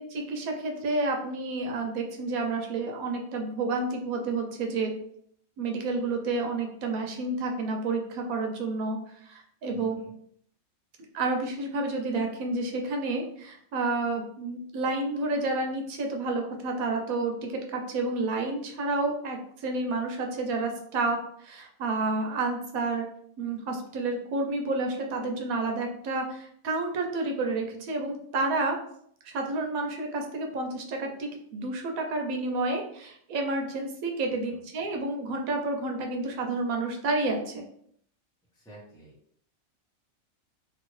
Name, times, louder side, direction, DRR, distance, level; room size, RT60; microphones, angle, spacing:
voice 1, 0.0-4.9 5.6-10.0 11.1-23.0 23.4-28.8 29.2-37.6, right 3 dB, 90° right, 3 dB, 1.1 m, -30 dB
voice 2, 9.7-10.1 34.3-34.6 38.5-39.1, right 1 dB, 5° left, -6 dB, 0.7 m, -51 dB
2.8 x 2.5 x 3.1 m, 0.67 s
omnidirectional pair, 1.5 m